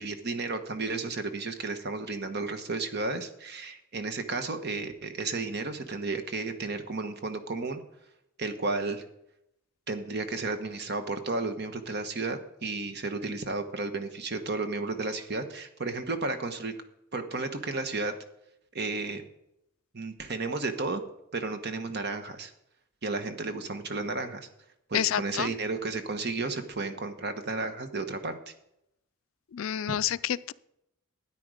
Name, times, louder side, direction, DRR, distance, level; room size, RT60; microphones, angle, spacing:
voice 1, 0.0-7.8 8.4-9.0 9.9-16.7 17.1-18.1 18.7-19.2 19.9-21.0 21.3-22.5 23.0-24.5 24.9-28.4, right 3 dB, 50° right, 8 dB, 1.3 m, -33 dB
voice 2, 24.9-25.5 29.5-30.5, left 10 dB, 70° left, 17 dB, 0.4 m, -29 dB
13.0 x 9.6 x 5.0 m, 0.80 s
head